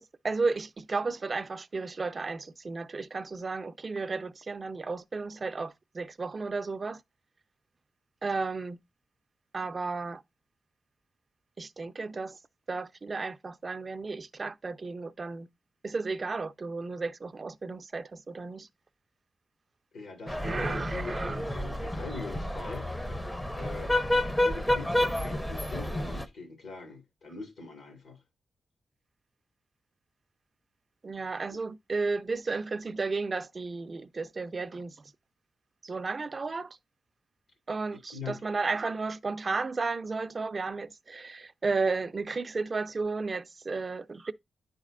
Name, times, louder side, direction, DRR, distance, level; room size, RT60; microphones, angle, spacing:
voice 1, 0.0-7.0 8.2-8.8 9.5-10.2 11.6-12.4 12.7-15.5 15.8-18.7 20.4-21.4 31.0-35.0 35.8-36.8 37.7-44.3, right 4 dB, 35° right, 0.4 m, -33 dB
voice 2, 19.9-23.1 23.5-28.2 31.5-31.6 38.1-38.4 43.7-43.8, left 4 dB, 80° left, 2.0 m, -43 dB
sound 1, 20.3-26.2, left 1 dB, 10° left, 0.5 m, -30 dB
10.5 x 4.1 x 2.5 m
wide cardioid pair, 105°, 0 cm